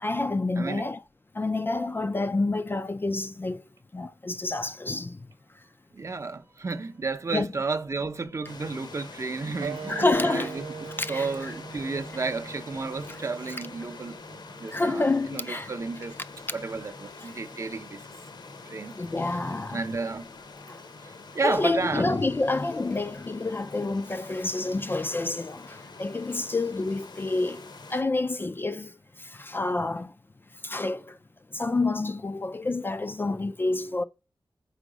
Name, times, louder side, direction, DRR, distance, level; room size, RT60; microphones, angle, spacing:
voice 1, 0.0-1.0 1.3-3.6 3.9-5.2 7.3-7.5 9.8-10.6 11.0-11.5 13.1-13.2 13.5-13.6 14.7-15.7 17.2-17.3 19.0-19.8 20.7-20.8 21.4-30.1 30.6-31.2 31.5-34.0, left 2 dB, 25° left, 0.3 m, -28 dB
voice 2, 5.9-10.6 11.1-14.2 14.6-15.1 15.3-16.2 16.5-18.0 18.7-18.9 19.7-20.3 21.3-22.2, right 4 dB, 35° right, 0.6 m, -32 dB
sound 1, 8.4-28.0, left 3 dB, 60° left, 0.8 m, -45 dB
Wind instrument woodwind instrument, 9.6-14.7, right 5 dB, 90° right, 0.6 m, -41 dB
5.0 x 4.6 x 5.0 m
wide cardioid pair, 130°, 8 cm